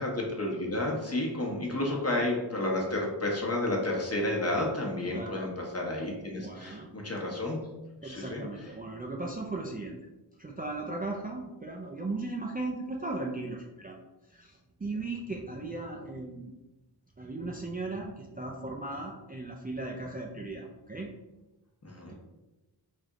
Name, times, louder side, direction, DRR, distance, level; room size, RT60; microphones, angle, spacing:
voice 1, 0.0-7.6 8.0-8.7 21.8-22.1, left 1 dB, 35° left, -1 dB, 1.0 m, -31 dB
voice 2, 5.1-5.5 6.4-6.9 8.0-10.0 10.4-14.0 14.3-16.5 17.2-21.1, right 2 dB, 20° right, -1 dB, 0.4 m, -37 dB
3.4 x 2.7 x 3.6 m, 1.1 s
wide cardioid pair, 50°, 44 cm